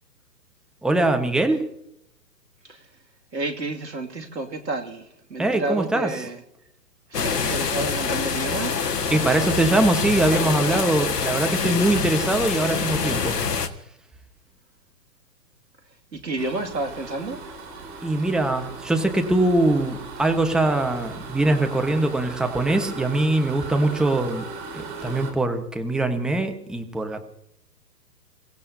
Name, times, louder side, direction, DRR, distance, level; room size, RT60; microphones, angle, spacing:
voice 1, 0.8-1.6 5.4-6.1 9.1-13.4 18.0-24.4 24.7-27.3, right 2 dB, ahead, 5 dB, 1.1 m, -22 dB
voice 2, 3.3-6.4 7.2-8.8 16.1-17.4, right 2 dB, 80° right, 4 dB, 2.5 m, -30 dB
sound 1, 7.1-13.7, left 5 dB, 70° left, 1.8 m, -25 dB
sound 2, 16.4-25.3, right 3 dB, 35° right, 4.4 m, -37 dB
28.5 x 16.5 x 2.7 m, 0.78 s
figure-of-eight pair, 125°, 50 cm